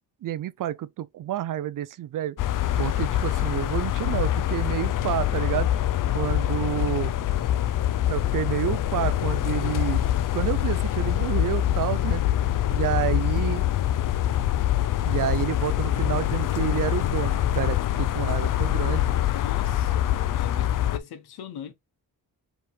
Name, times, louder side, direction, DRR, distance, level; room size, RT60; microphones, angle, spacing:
voice 1, 0.2-2.4 2.8-5.7 6.1-7.1 8.1-10.0 10.3-12.2 12.7-13.6 15.1-19.1, right 12 dB, 60° right, 0.5 m, -29 dB
sound 1, 2.4-21.0, left 12 dB, 60° left, 0.5 m, -24 dB
voice 2, 19.3-21.7, left 8 dB, 90° left, 1.0 m, -40 dB
4.8 x 3.0 x 3.3 m
cardioid pair, 100°, 37 cm